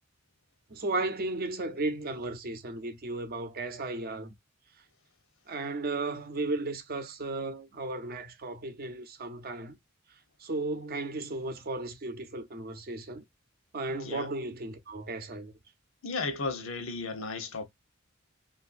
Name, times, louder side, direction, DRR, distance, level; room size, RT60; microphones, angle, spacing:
voice 1, 0.7-4.3 5.5-9.8 10.4-13.2 13.7-15.5, right 2 dB, 50° right, 0.7 m, -35 dB
voice 2, 16.0-17.6, left 3 dB, 85° left, 0.9 m, -34 dB
3.3 x 2.6 x 2.4 m
head